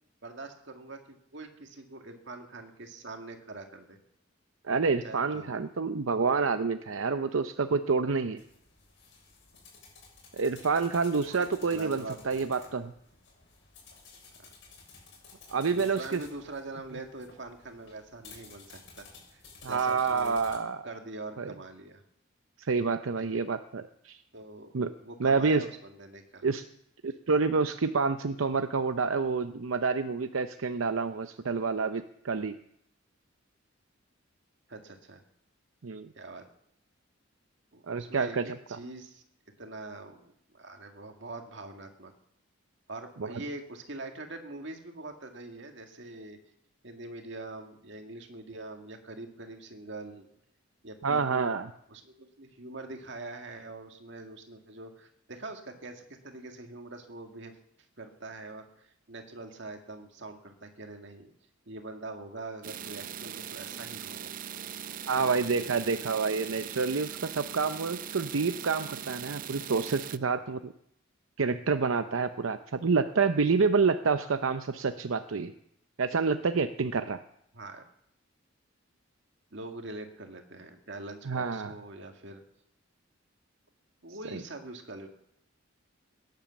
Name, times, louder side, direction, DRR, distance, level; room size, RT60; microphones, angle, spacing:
voice 1, 0.2-1.0 1.3-4.0 5.0-5.6 11.3-12.7 15.7-19.1 19.3-20.3 20.8-22.0 23.2-23.4 24.3-26.5 34.7-35.2 36.1-36.4 37.7-39.2 39.6-42.1 42.9-46.4 46.8-50.3 50.8-51.6 51.9-57.5 58.0-61.3 61.7-64.3 65.2-65.3 77.5-77.8 79.5-82.4 84.0-85.1, right 2 dB, 60° right, 4 dB, 2.1 m, -43 dB
voice 2, 4.6-8.4 10.3-12.9 15.5-16.2 19.6-20.9 21.4-21.5 22.6-24.2 24.7-24.9 25.2-25.7 26.4-26.7 27.0-32.6 35.8-36.1 37.9-38.5 43.2-43.3 51.0-51.7 65.1-70.7 71.4-75.5 76.0-77.2 81.3-81.7 84.3-84.4, right 4 dB, 85° right, 9 dB, 0.7 m, -28 dB
sound 1, 8.4-20.6, left 4 dB, 60° left, 6.8 m, -54 dB
sound 2, 62.6-70.2, right 9 dB, 45° right, 0.5 m, -40 dB
17.5 x 10.5 x 7.2 m, 0.75 s
head